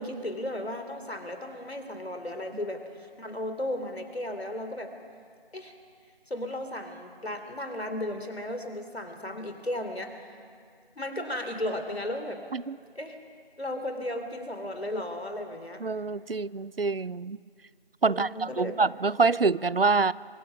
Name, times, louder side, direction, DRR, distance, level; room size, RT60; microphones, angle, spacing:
voice 1, 0.0-4.9 5.5-5.8 6.3-10.3 11.0-12.4 13.0-13.2 13.6-15.8 18.1-18.7, left 1 dB, 80° left, 7 dB, 3.3 m, -35 dB
voice 2, 15.8-17.4 18.0-20.1, right 4 dB, 65° right, 21 dB, 0.5 m, -26 dB
24.0 x 22.5 x 6.1 m, 2.1 s
figure-of-eight pair, 180°, 31 cm